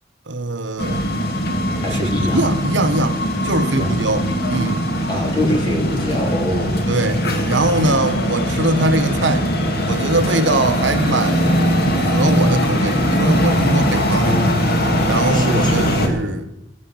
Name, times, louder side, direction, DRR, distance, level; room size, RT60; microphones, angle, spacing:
voice 1, 0.3-1.1 1.9-4.9 6.9-9.5 9.8-11.5 12.0-14.5 15.0-16.5, right 2 dB, 75° right, 1.2 m, -22 dB
sound 1, 0.8-16.1, equal, 55° left, 2.2 m, -20 dB
voice 2, 1.8-2.4 3.8-4.0 5.1-6.8 14.2-14.7 15.3-16.2, left 1 dB, 25° left, 3.6 m, -23 dB
15.0 x 11.0 x 7.1 m
head